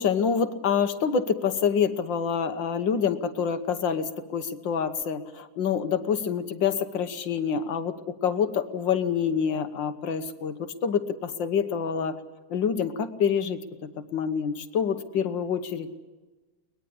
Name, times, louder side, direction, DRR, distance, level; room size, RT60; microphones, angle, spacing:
voice 1, 0.0-12.2 12.5-16.0, left 7 dB, 65° left, 10 dB, 1.8 m, -27 dB
23.0 x 20.0 x 8.5 m, 1.2 s
omnidirectional pair, 2.2 m